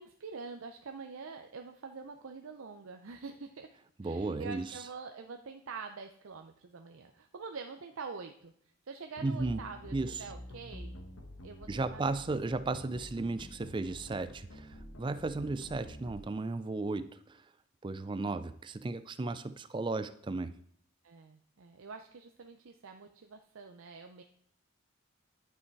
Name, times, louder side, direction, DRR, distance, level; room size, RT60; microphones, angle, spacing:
voice 1, 0.0-3.7 4.0-8.5 8.9-11.0 11.4-12.2 21.0-24.2, right 4 dB, 80° right, 4 dB, 0.6 m, -46 dB
voice 2, 4.0-4.8 9.2-9.6 9.9-10.3 11.7-17.4 17.8-20.6, right 3 dB, 20° right, 14 dB, 0.3 m, -35 dB
sound 1, 9.2-16.2, left 1 dB, 85° left, 1.3 m, -48 dB
11.0 x 5.7 x 4.6 m, 0.64 s
head